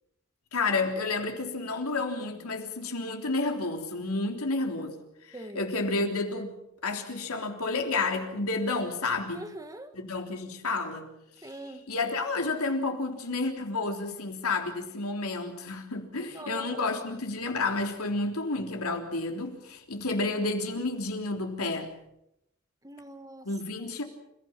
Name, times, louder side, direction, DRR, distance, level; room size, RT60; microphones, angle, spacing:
voice 1, 0.5-5.0 5.2-6.5 6.8-9.4 9.9-11.1 11.4-21.9 23.4-24.0, left 3 dB, 90° left, 4 dB, 3.6 m, -30 dB
voice 2, 9.3-9.9 11.4-11.8 16.3-16.7 22.8-23.5, right 1 dB, 15° right, 8 dB, 1.6 m, -42 dB
29.0 x 16.0 x 7.4 m, 0.84 s
head